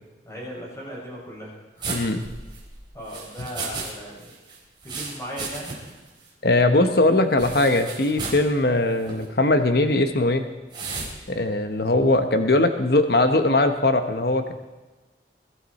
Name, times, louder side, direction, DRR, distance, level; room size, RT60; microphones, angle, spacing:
voice 1, 0.2-2.1 2.9-4.3 4.8-5.7, equal, 20° left, -5 dB, 6.2 m, -37 dB
sound 1, 1.8-3.9 4.2-6.0 6.3-6.4 7.4-8.5 9.0-9.2 10.7-11.1, right 4 dB, 25° right, 3.6 m, -34 dB
voice 2, 1.9-2.2 6.4-10.4 11.3-14.5, left 2 dB, 55° left, 7 dB, 1.0 m, -20 dB
22.0 x 12.5 x 4.2 m, 1.2 s
head